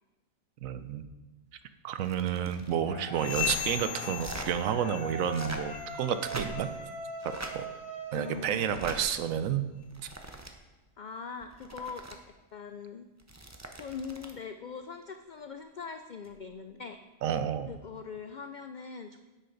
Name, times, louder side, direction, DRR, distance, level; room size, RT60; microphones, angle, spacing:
voice 1, 0.6-1.0 1.8-6.7 7.2-7.6 8.1-9.6 17.2-17.7, right 9 dB, 85° right, 11 dB, 1.1 m, -30 dB
sound 1, 2.0-2.7 3.2-3.6 4.1-4.5 5.2-5.7 6.2-6.8 7.2-7.5 8.6-9.0 9.8-10.5 11.4-12.2 13.2-14.4 16.2-16.4, right 2 dB, 15° right, 0.6 m, -42 dB
sound 2, 2.8-8.9, right 1 dB, 40° right, 2.5 m, -42 dB
sound 3, 3.1-5.4 5.6-6.0 6.5-6.7 7.3-7.5 8.2-8.3 9.0-9.1, left 14 dB, 55° left, 0.9 m, -38 dB
voice 2, 8.1-8.8 11.0-12.0 12.5-13.1 13.7-17.0 17.7-19.2, left 5 dB, 75° left, 7 dB, 0.4 m, -41 dB
10.5 x 8.3 x 3.9 m, 1.2 s
omnidirectional pair, 1.4 m